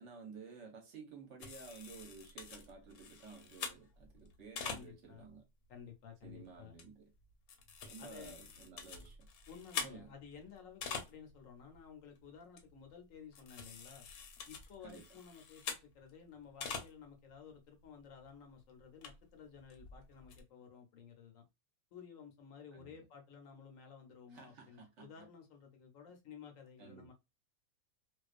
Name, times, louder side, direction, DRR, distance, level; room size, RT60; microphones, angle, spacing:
voice 1, 0.0-5.4 6.2-7.1 7.9-9.3 9.8-10.1 14.8-15.1 22.7-23.0 24.3-25.3 26.8-27.1, right 5 dB, 60° right, 0.9 m, -53 dB
sound 1, 1.4-5.2 5.8-5.9 6.2-6.4 6.8-6.9 7.2-11.4 11.7-11.9 12.2-12.3 12.6-12.9 13.3-16.1 16.4-16.9 17.3-17.4 17.8-17.9 18.2-18.3 18.8-20.4, left 6 dB, 90° left, 1.1 m, -46 dB
voice 2, 4.6-5.3 5.7-6.7 8.0-8.3 9.5-14.1 14.5-21.4 21.9-27.1, left 7 dB, 70° left, 1.0 m, -54 dB
2.4 x 2.2 x 2.3 m
omnidirectional pair, 1.5 m